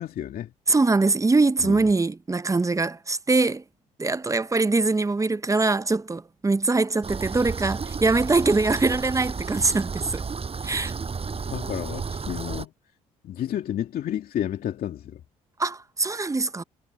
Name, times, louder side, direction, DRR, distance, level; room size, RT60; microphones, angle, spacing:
voice 1, 0.0-0.5 1.6-1.8 11.4-12.7 13.2-15.2, left 11 dB, 60° left, 2.5 m, -31 dB
voice 2, 0.7-3.6 4.0-10.2 10.6-10.9 15.6-16.6, right 3 dB, 20° right, 0.9 m, -23 dB
sound 1, 7.0-12.7, right 5 dB, 35° right, 5.7 m, -32 dB
hypercardioid pair, 60°, 17 cm